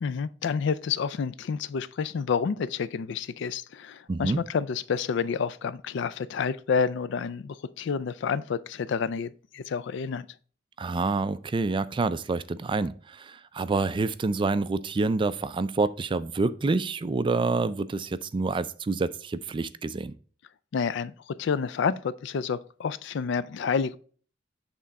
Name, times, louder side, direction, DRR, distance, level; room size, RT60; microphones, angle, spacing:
voice 1, 0.0-10.3 20.7-24.0, left 6 dB, 65° left, 0.4 m, -29 dB
voice 2, 4.1-4.4 10.8-20.1, right 3 dB, 25° right, 0.3 m, -27 dB
8.0 x 3.7 x 4.1 m
head